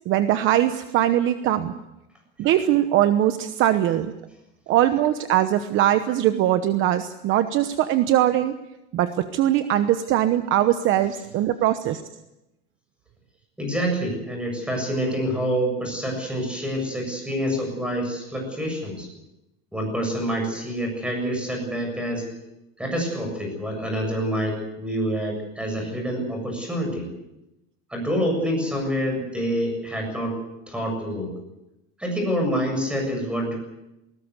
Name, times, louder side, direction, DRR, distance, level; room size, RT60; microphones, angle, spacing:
voice 1, 0.1-1.7 2.4-4.1 4.7-8.5 8.9-12.0, right 12 dB, 40° right, 10 dB, 1.1 m, -21 dB
voice 2, 13.6-19.1 19.7-22.3 22.8-27.1 27.9-30.4 30.7-31.3 32.0-33.5, equal, 5° right, 3 dB, 7.4 m, -27 dB
20.5 x 19.5 x 8.2 m, 0.92 s
cardioid pair, 155°, 30 cm